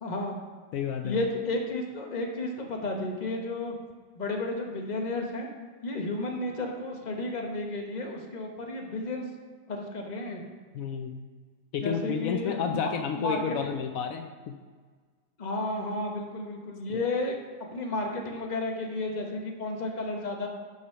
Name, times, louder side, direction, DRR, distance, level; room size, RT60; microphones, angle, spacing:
voice 1, 0.0-0.4 1.0-3.7 4.2-5.5 5.8-9.2 9.7-10.4 11.8-13.7 15.4-17.3 17.7-20.5, left 2 dB, 35° left, 1 dB, 1.3 m, -32 dB
voice 2, 0.7-1.3 10.7-11.2 11.7-14.5 16.9-17.0, left 7 dB, 80° left, 6 dB, 1.0 m, -31 dB
7.9 x 5.6 x 5.7 m, 1.5 s
omnidirectional pair, 1.4 m